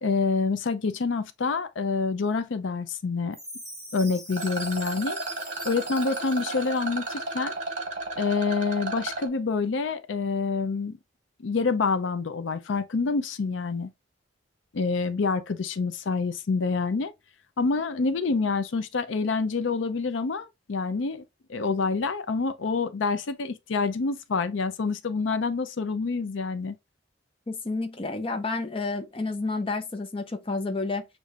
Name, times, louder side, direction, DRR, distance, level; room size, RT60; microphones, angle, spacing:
voice 1, 0.0-3.4 3.9-5.2 5.6-7.6 8.2-11.0 11.4-13.9 14.7-17.1 17.6-21.2 21.5-26.8, left 4 dB, 75° left, 0.5 m, -27 dB
Chime, 3.3-7.3, right 1 dB, 15° right, 3.4 m, -43 dB
Rattle, 4.3-9.3, right 3 dB, 40° right, 1.4 m, -33 dB
voice 2, 27.5-31.0, left 3 dB, 30° left, 0.6 m, -30 dB
6.5 x 3.1 x 2.4 m
head